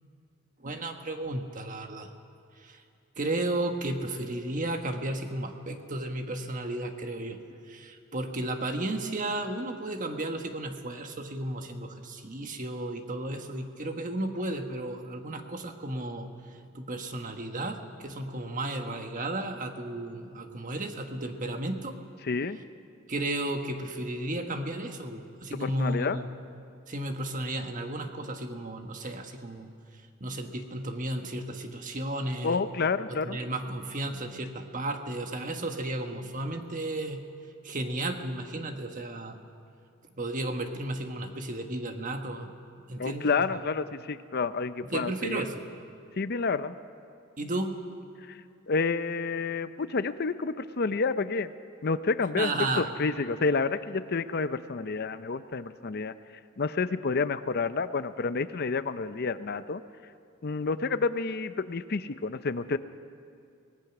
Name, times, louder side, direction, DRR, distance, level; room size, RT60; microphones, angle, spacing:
voice 1, 0.6-2.1 2.6-2.8 3.2-16.3 16.7-22.0 23.1-26.3 26.9-29.7 30.2-32.6 33.1-37.2 37.6-39.4 40.2-43.6 44.8-45.6 47.4-47.7 52.4-52.9, right 1 dB, 40° right, 5 dB, 1.5 m, -33 dB
voice 2, 22.2-22.6 25.6-26.2 32.4-33.4 43.0-45.4 46.2-46.8 48.3-48.4 48.7-51.5 51.8-52.5 52.8-56.1 56.6-59.8 60.4-62.8, left 4 dB, 50° left, 12 dB, 0.6 m, -29 dB
25.0 x 18.5 x 6.0 m, 2.5 s
head